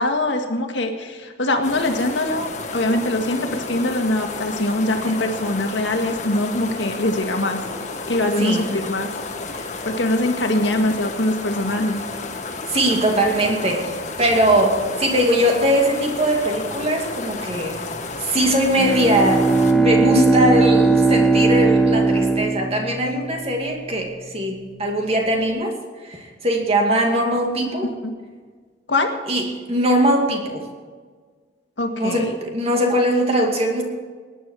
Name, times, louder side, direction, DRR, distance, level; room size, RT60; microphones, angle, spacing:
voice 1, 0.0-7.6 8.1-9.1 9.5-12.0 27.8-28.1 28.9-29.1 31.8-32.4, left 1 dB, 85° left, 4 dB, 1.8 m, -23 dB
sound 1, 1.6-19.7, left 3 dB, 40° left, 1.5 m, -32 dB
voice 2, 12.7-17.8 18.2-19.4 19.7-25.7 26.0-27.9 29.3-30.6 31.9-33.8, right 1 dB, 35° right, 1 dB, 2.5 m, -21 dB
Bowed string instrument, 18.8-23.3, right 3 dB, 5° left, 0.8 m, -18 dB
19.5 x 10.0 x 4.8 m, 1.5 s
head